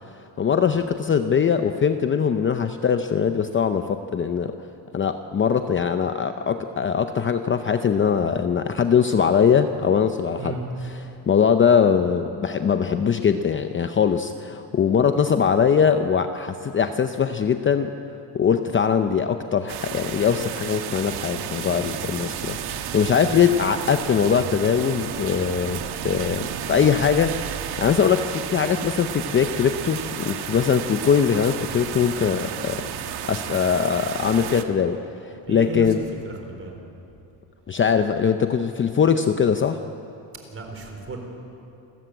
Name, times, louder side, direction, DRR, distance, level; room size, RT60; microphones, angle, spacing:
voice 1, 0.4-4.6 4.9-10.6 10.8-17.9 18.3-27.3 27.8-32.8 33.2-36.0 37.7-39.8, left 7 dB, 25° left, 8 dB, 0.7 m, -21 dB
sound 1, 19.7-34.6, right 9 dB, 60° right, 1.4 m, -32 dB
voice 2, 35.5-35.9 36.2-36.7 40.5-41.2, right 3 dB, 30° right, 3 dB, 4.1 m, -34 dB
29.0 x 14.0 x 8.1 m, 2.8 s
cardioid pair, 130°, 45 cm